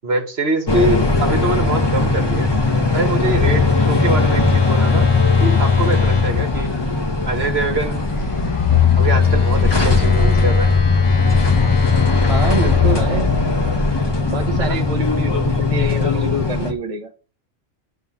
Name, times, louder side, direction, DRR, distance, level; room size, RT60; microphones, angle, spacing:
voice 1, 0.0-2.5 2.9-5.1 5.4-6.8 7.3-8.1 9.0-10.7 14.6-14.8, right 3 dB, 55° right, 1.8 m, -24 dB
sound 1, 0.7-16.7, left 3 dB, 20° left, 1.3 m, -19 dB
Telephone, 2.9-7.0 8.1-13.8, left 6 dB, 45° left, 1.3 m, -19 dB
voice 2, 12.2-13.4 14.3-17.1, right 1 dB, 30° right, 1.1 m, -25 dB
9.3 x 4.4 x 7.2 m
omnidirectional pair, 1.3 m